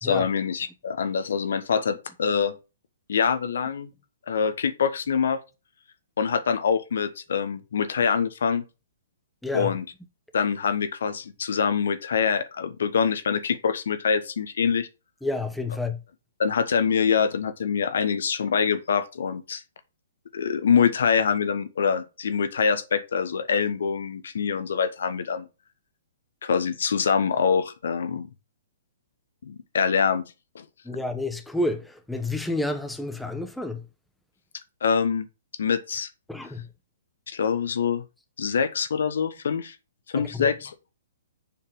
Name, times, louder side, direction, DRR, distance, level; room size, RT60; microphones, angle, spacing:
voice 1, 0.0-2.5 3.1-3.9 4.3-5.4 6.2-8.6 9.5-9.8 10.3-14.9 16.4-19.6 20.3-25.5 26.4-28.3 29.4-30.3 30.5-30.6 34.8-35.3 35.6-36.1 37.3-38.0 38.4-39.7 40.1-40.9, left 6 dB, 65° left, 1.1 m, -25 dB
voice 2, 15.2-16.0 30.8-33.8 36.3-36.7 40.1-40.5, left 2 dB, ahead, 1.1 m, -30 dB
7.1 x 5.7 x 6.1 m
figure-of-eight pair, 120°, 0 cm